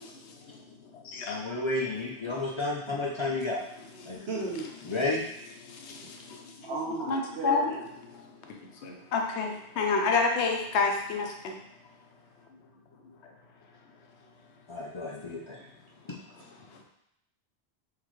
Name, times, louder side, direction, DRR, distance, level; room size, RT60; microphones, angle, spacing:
voice 1, 0.2-1.5 2.4-2.6 4.0-4.3 5.6-7.7 8.0-11.6 13.2-13.3 14.9-15.1 16.7-16.8, left 4 dB, 90° left, 2 dB, 1.0 m, -31 dB
voice 2, 1.3-3.6 4.1-4.2 4.8-5.2 14.7-15.6 16.1-16.2, left 2 dB, 45° left, -4 dB, 0.4 m, -31 dB
voice 3, 4.3-4.7 6.6-7.8 15.5-15.6, right 2 dB, 80° right, -4 dB, 1.3 m, -34 dB
3.8 x 3.6 x 3.1 m, 0.78 s
omnidirectional pair, 1.1 m